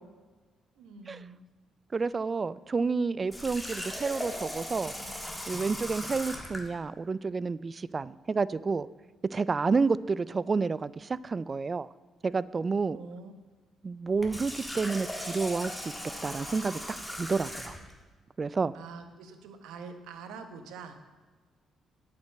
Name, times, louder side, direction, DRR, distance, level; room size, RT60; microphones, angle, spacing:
voice 1, 0.8-1.4 12.9-13.3 18.7-21.1, right 5 dB, 90° right, 7 dB, 1.0 m, -45 dB
voice 2, 1.9-4.9 5.5-8.9 9.3-11.9 12.2-13.0 13.8-15.8 16.2-17.7 18.4-18.8, right 4 dB, 35° right, 19 dB, 0.3 m, -30 dB
Water tap faucet, 3.3-6.7 14.1-17.9, equal, 5° left, 1.6 m, -38 dB
8.8 x 5.9 x 7.7 m, 1.4 s
cardioid pair, 90°, 0 cm